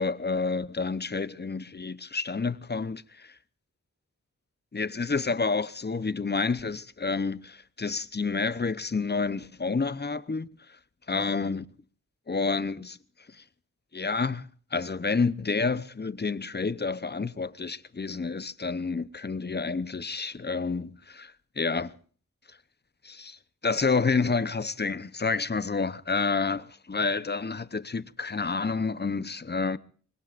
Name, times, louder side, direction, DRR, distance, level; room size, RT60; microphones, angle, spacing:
voice 1, 0.0-3.3 4.7-10.5 11.1-11.7 12.3-13.0 13.3-13.4 13.9-21.9 23.0-23.4 23.6-29.8, left 4 dB, 35° left, 0.8 m, -29 dB
25.0 x 20.5 x 2.5 m
wide cardioid pair, 55°, 31 cm